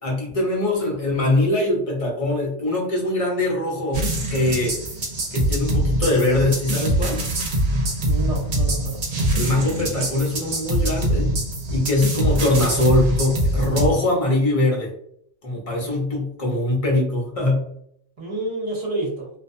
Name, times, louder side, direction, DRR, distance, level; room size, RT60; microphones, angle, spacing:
voice 1, 0.0-4.8 5.3-7.2 9.3-11.3 11.7-14.9 15.4-17.7, left 2 dB, 35° left, -2 dB, 0.7 m, -22 dB
sound 1, 3.9-13.9, right 1 dB, 70° right, 1.0 m, -23 dB
voice 2, 8.0-9.2 18.2-19.3, right 2 dB, 40° right, -3 dB, 0.6 m, -29 dB
2.4 x 2.2 x 2.5 m, 0.68 s
omnidirectional pair, 1.2 m